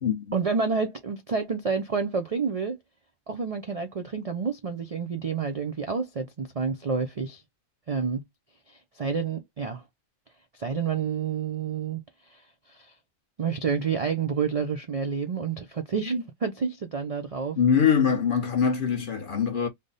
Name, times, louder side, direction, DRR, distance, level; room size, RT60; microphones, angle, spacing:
voice 1, 0.3-2.8 3.3-7.4 7.9-8.2 8.7-9.8 10.5-12.0 12.3-12.9 13.4-17.6, right 5 dB, 65° right, 0.3 m, -29 dB
voice 2, 17.6-19.7, left 7 dB, 45° left, 0.9 m, -23 dB
3.3 x 2.1 x 3.9 m
omnidirectional pair, 1.4 m